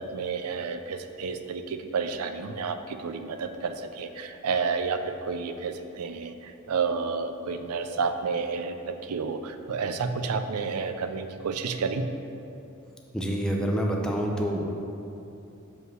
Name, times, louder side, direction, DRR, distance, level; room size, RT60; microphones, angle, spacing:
voice 1, 0.0-12.1, right 5 dB, 90° right, 8 dB, 0.5 m, -30 dB
voice 2, 13.1-14.7, equal, 5° left, 0 dB, 0.6 m, -27 dB
5.2 x 4.8 x 6.2 m, 2.8 s
head